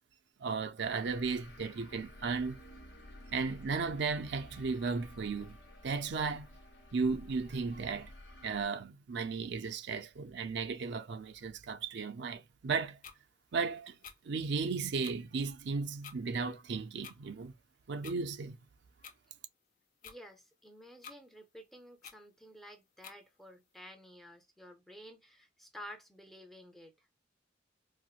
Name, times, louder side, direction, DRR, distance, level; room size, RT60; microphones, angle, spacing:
voice 1, 0.4-2.6 3.3-5.6 5.8-6.5 6.9-8.1 8.4-13.0 13.5-14.0 14.2-17.5 17.9-18.6, right 4 dB, 65° right, 0.5 m, -35 dB
sound 1, 0.8-8.7, left 1 dB, 70° left, 1.0 m, -53 dB
sound 2, 13.0-13.2 14.0-14.2 15.0-15.1 16.0-16.2 17.0-17.2 18.0-18.2 19.0-19.1 20.0-20.2 21.0-21.2 22.0-22.2 23.0-23.2, left 7 dB, 45° left, 0.5 m, -49 dB
voice 2, 20.0-27.1, equal, ahead, 0.6 m, -52 dB
4.3 x 2.1 x 2.4 m
head